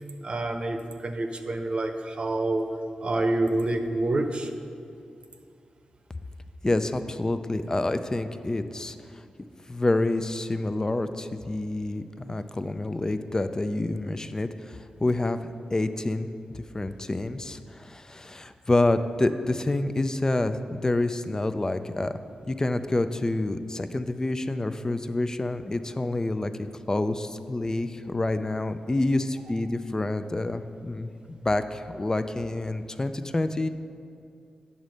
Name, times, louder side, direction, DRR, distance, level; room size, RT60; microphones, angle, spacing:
voice 1, 0.2-2.7 3.0-4.5, right 2 dB, 50° right, 5 dB, 0.7 m, -27 dB
voice 2, 6.6-8.9 9.7-15.4 15.7-16.3 16.5-22.1 22.5-26.5 26.9-31.1 31.4-33.7, left 2 dB, 25° left, 10 dB, 0.4 m, -28 dB
8.8 x 4.1 x 6.4 m, 2.4 s
cardioid pair, 55°, 2 cm